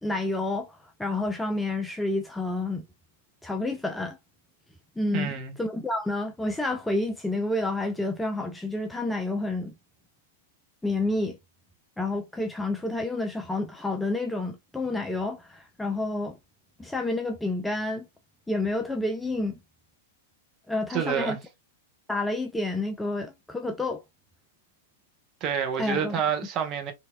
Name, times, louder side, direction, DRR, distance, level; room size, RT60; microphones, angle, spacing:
voice 1, 0.0-2.8 3.4-4.2 5.0-5.3 5.6-9.7 10.8-11.4 12.0-16.4 16.8-18.1 18.5-19.6 20.7-21.4 22.1-24.0 25.8-26.1, left 2 dB, 5° left, 0.3 m, -29 dB
voice 2, 5.1-5.5 20.9-21.4 25.4-26.9, right 8 dB, 35° right, 0.8 m, -28 dB
2.9 x 2.6 x 2.2 m
figure-of-eight pair, 100°, 0 cm